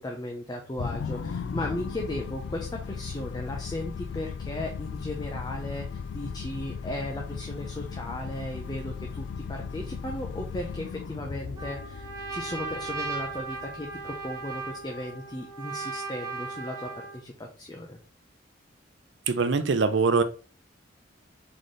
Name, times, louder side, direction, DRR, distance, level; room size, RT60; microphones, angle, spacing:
voice 1, 0.0-18.0, left 1 dB, 20° left, 1 dB, 0.6 m, -36 dB
sound 1, 0.8-15.3, left 5 dB, 70° left, 0.3 m, -37 dB
Trumpet, 11.6-17.2, right 4 dB, 20° right, 1.0 m, -37 dB
voice 2, 19.3-20.2, right 4 dB, 75° right, 11 dB, 0.5 m, -23 dB
4.0 x 3.9 x 3.2 m, 0.38 s
head